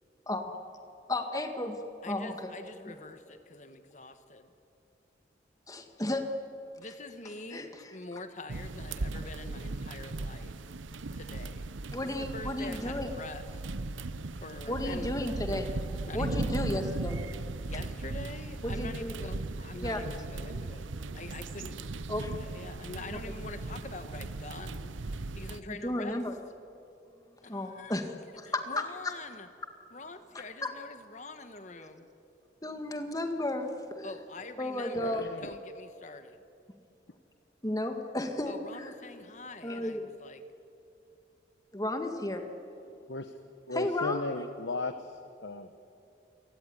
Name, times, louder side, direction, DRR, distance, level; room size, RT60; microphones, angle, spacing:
voice 1, 1.1-1.8 2.1-2.5 5.7-6.3 7.5-7.7 11.9-13.1 14.7-15.7 16.1-17.2 18.6-19.1 19.8-20.0 22.1-22.3 23.1-23.2 25.7-26.4 27.5-28.6 30.6-30.7 31.8-31.9 32.6-34.1 34.6-35.3 37.6-38.9 39.6-40.0 41.7-42.5 43.7-44.2, left 1 dB, 20° left, 5 dB, 1.9 m, -33 dB
voice 2, 2.0-4.5 6.7-10.6 11.1-11.7 12.0-13.6 14.4-15.2 16.1-16.8 17.6-21.8 22.4-26.2 27.4-28.0 28.5-29.5 29.9-32.1 34.0-36.4 38.5-40.4, left 2 dB, 40° left, 9 dB, 1.5 m, -45 dB
sound 1, 8.5-25.6, right 2 dB, 85° right, 0.8 m, -37 dB
voice 3, 34.9-35.5 43.1-43.3 43.7-44.9 45.4-45.7, left 3 dB, 75° left, 9 dB, 1.0 m, -35 dB
28.5 x 18.0 x 10.0 m, 2.7 s
head